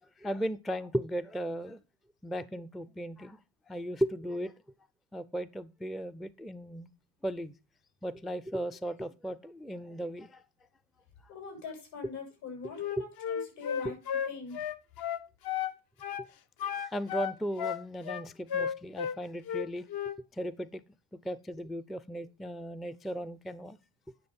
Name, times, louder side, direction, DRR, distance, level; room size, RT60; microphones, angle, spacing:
voice 1, 0.2-1.8 2.2-3.4 3.7-4.5 5.1-6.9 7.2-7.5 8.0-10.4 13.0-13.1 13.8-13.9 16.7-19.9 20.3-20.8 21.2-23.8, equal, ahead, 0.4 m, -36 dB
voice 2, 11.3-14.0 14.3-14.7, left 5 dB, 75° left, 6.8 m, -43 dB
Wind instrument woodwind instrument, 12.8-15.8 16.0-16.3 16.6-19.2 19.5-20.2, left 9 dB, 50° left, 0.8 m, -34 dB
9.9 x 6.3 x 5.3 m
supercardioid pair, 90°, 46 cm